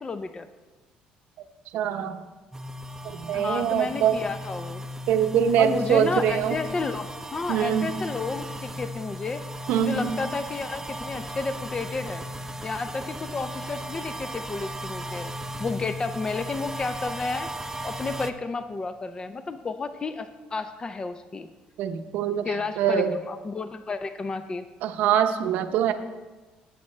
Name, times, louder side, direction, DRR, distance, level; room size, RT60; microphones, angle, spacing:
voice 1, 0.0-0.5 3.3-4.8 5.6-9.4 9.8-12.2 12.6-15.3 15.6-17.5 17.8-21.5 22.4-24.6, left 4 dB, 30° left, 10 dB, 0.5 m, -31 dB
voice 2, 1.7-2.2 3.1-4.2 5.1-6.6 7.5-7.9 9.7-10.1 21.8-22.5 22.8-23.2 24.8-25.9, right 9 dB, 80° right, 8 dB, 0.7 m, -23 dB
sound 1, 2.5-18.3, equal, 15° right, 0.6 m, -36 dB
18.5 x 7.3 x 3.2 m, 1.2 s
cardioid pair, 95°, 3 cm